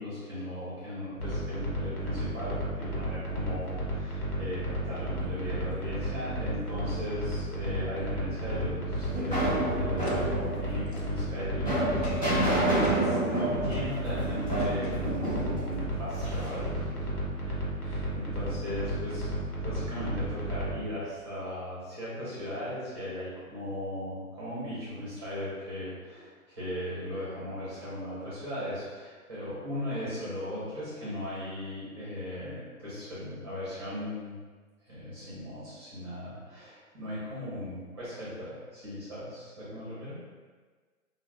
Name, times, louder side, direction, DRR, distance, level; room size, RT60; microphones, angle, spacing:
voice 1, 0.0-12.3 13.0-16.8 17.4-34.3 34.9-40.2, left 1 dB, 20° right, -10 dB, 0.7 m, -37 dB
sound 1, 1.2-13.0 13.5-20.8, right 1 dB, 80° left, 1.0 m, -33 dB
sound 2, 8.5-16.6, right 1 dB, 20° left, 1.2 m, -29 dB
Boom, 10.0-10.1 10.9-11.1 12.0-12.4 12.8-13.2 13.7-13.9 14.6-15.0 16.2-18.9, left 2 dB, 50° left, 0.4 m, -47 dB
3.1 x 2.1 x 2.3 m, 1.4 s
hypercardioid pair, 165°, 44 cm